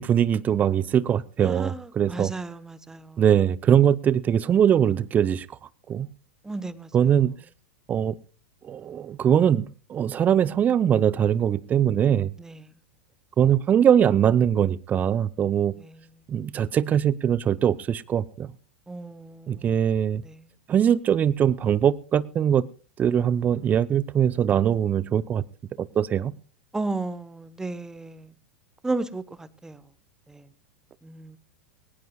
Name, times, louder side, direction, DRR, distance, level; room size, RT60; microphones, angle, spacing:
voice 1, 0.0-2.3 3.2-5.5 5.9-6.1 6.9-7.3 7.9-8.1 8.6-12.3 13.4-15.7 16.3-18.5 19.5-20.2 20.7-22.6 23.0-25.4 25.8-26.3, right 9 dB, 25° right, 0.6 m, -22 dB
voice 2, 1.4-3.2 6.4-6.9 12.4-12.6 15.8-16.0 18.9-19.7 20.2-20.4 26.7-28.3 28.8-29.8 30.3-30.5 31.0-31.4, right 3 dB, 10° right, 1.0 m, -34 dB
21.0 x 18.5 x 2.3 m
figure-of-eight pair, 90°, 6 cm